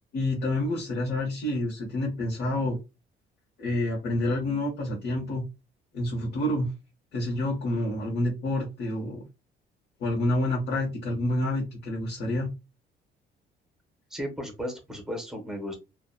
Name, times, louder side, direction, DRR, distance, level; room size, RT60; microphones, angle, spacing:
voice 1, 0.1-2.8 3.6-5.4 5.9-6.7 7.1-9.2 10.0-12.5, left 1 dB, 65° left, 0.9 m, -28 dB
voice 2, 14.1-15.8, equal, 5° right, 0.7 m, -35 dB
2.7 x 2.1 x 2.3 m
cardioid pair, 175°, 18 cm